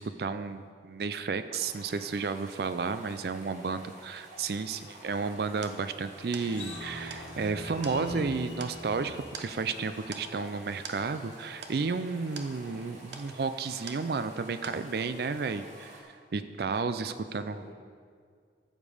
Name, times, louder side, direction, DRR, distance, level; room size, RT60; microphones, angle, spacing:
voice 1, 0.0-17.6, right 4 dB, 60° right, 11 dB, 0.4 m, -32 dB
sound 1, 1.6-16.0, right 1 dB, 40° right, 2.4 m, -51 dB
voice 2, 3.3-3.8 17.0-17.7, equal, 10° left, 0 dB, 1.1 m, -51 dB
sound 2, 4.9-14.4 14.6-15.2, right 5 dB, 85° right, 0.9 m, -47 dB
sound 3, 6.4-13.0, left 1 dB, 85° left, 1.6 m, -44 dB
14.0 x 7.4 x 4.9 m, 2.1 s
head